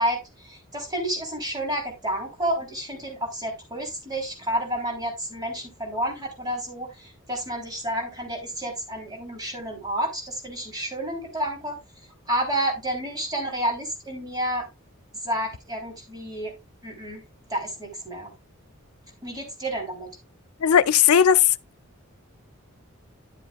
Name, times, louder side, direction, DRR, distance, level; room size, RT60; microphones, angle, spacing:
voice 1, 0.0-11.8 12.3-14.7 15.2-16.5 16.8-17.2 17.5-18.3 19.2-20.1, right 1 dB, 20° right, 3.5 m, -30 dB
voice 2, 20.6-21.6, left 8 dB, 80° left, 0.5 m, -17 dB
11.5 x 7.7 x 2.4 m
head